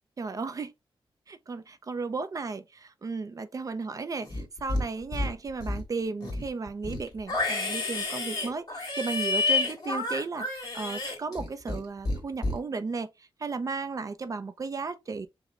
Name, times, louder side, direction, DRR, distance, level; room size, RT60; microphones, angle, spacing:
voice 1, 0.2-0.7 1.3-13.1 13.4-15.3, right 4 dB, 35° right, 0.5 m, -34 dB
Livestock farm animals working animals, 4.2-4.8 5.1-5.8 6.2-11.8 12.0-12.6, left 3 dB, 45° left, 1.8 m, -30 dB
5.1 x 2.1 x 3.7 m
wide cardioid pair, 170°, 10 cm